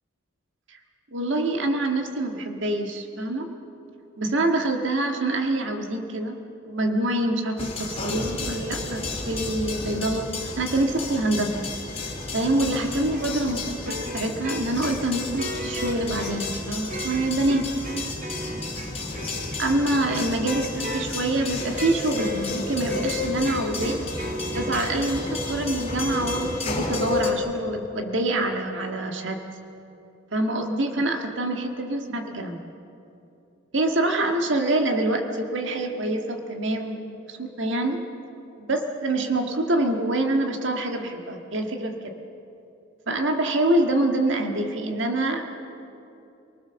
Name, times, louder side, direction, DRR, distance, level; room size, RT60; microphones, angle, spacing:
voice 1, 1.1-3.5 4.2-6.4 6.6-11.7 12.3-17.7 19.6-24.0 24.5-29.4 30.3-32.6 33.7-38.0 38.7-42.0 43.1-45.5, right 1 dB, 65° right, 4 dB, 1.8 m, -26 dB
sound 1, 7.6-27.3, left 3 dB, 30° left, 3.4 m, -32 dB
sound 2, 13.1-25.1, right 1 dB, 40° right, 2.1 m, -36 dB
29.0 x 19.0 x 7.0 m, 2.8 s
head